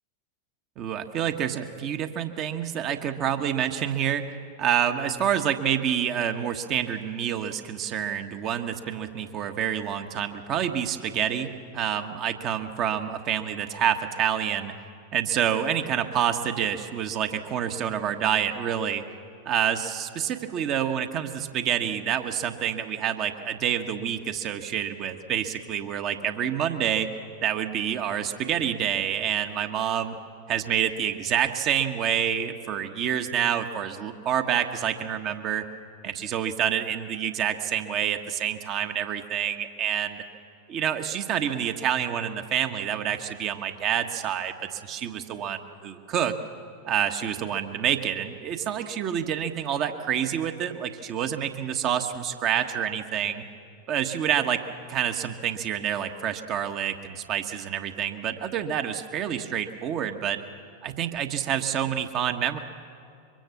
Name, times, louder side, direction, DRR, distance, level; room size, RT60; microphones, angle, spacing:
voice 1, 0.8-4.3 4.6-14.7 15.1-19.0 19.4-27.1 27.4-30.1 30.5-35.6 36.0-40.2 40.7-46.3 46.9-53.4 53.9-54.6 54.9-60.4 60.8-62.6, right 9 dB, 35° right, 7 dB, 1.4 m, -27 dB
24.5 x 23.0 x 7.1 m, 2.5 s
figure-of-eight pair, 90°, 0 cm